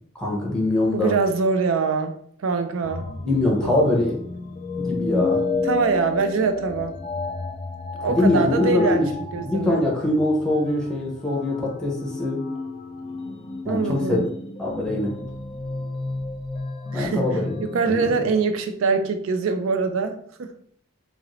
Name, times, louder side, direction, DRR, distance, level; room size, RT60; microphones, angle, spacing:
voice 1, 0.1-1.1 3.2-4.2 4.8-5.4 8.1-9.1 9.4-12.4 13.6-14.2 14.6-15.1 16.9-17.6 17.8-18.2, left 2 dB, 5° left, -3 dB, 0.7 m, -23 dB
voice 2, 0.9-3.1 3.6-3.7 5.6-7.0 8.0-9.1 9.3-9.8 13.7-14.3 16.9-17.3 17.6-20.5, right 4 dB, 70° right, 9 dB, 0.4 m, -23 dB
sound 1, 2.8-17.9, left 3 dB, 25° left, 0.3 m, -31 dB
2.9 x 2.6 x 3.0 m, 0.64 s
head